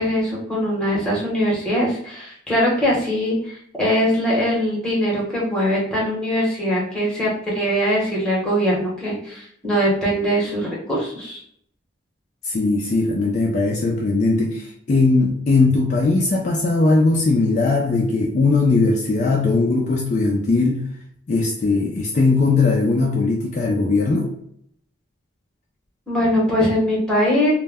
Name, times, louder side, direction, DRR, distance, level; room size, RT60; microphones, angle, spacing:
voice 1, 0.0-11.4 26.1-27.5, equal, 5° left, -5 dB, 0.8 m, -21 dB
voice 2, 12.4-20.8 21.3-24.3, left 3 dB, 40° left, -1 dB, 0.3 m, -19 dB
2.1 x 2.1 x 3.3 m, 0.67 s
head